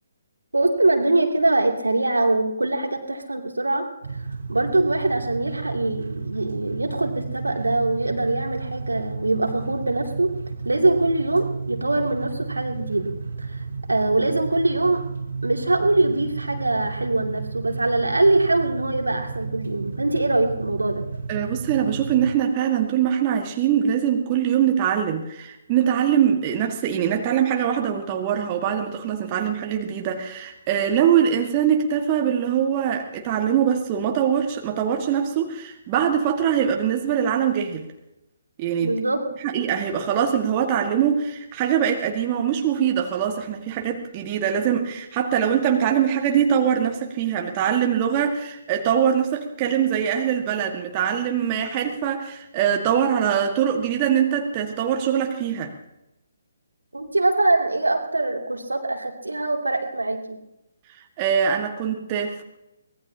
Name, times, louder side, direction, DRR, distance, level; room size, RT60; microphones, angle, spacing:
voice 1, 0.5-3.9 4.5-10.4 10.6-13.6 13.9-15.0 15.4-21.0 38.8-39.3 56.9-60.4, right 2 dB, 75° right, 2 dB, 2.9 m, -23 dB
sound 1, 4.0-22.4, right 4 dB, 55° right, 1.1 m, -33 dB
voice 2, 21.3-37.9 38.6-39.0 39.4-55.7 60.9-62.4, right 8 dB, 25° right, 3 dB, 1.8 m, -23 dB
24.0 x 19.5 x 2.9 m, 0.89 s
figure-of-eight pair, 135°, 0 cm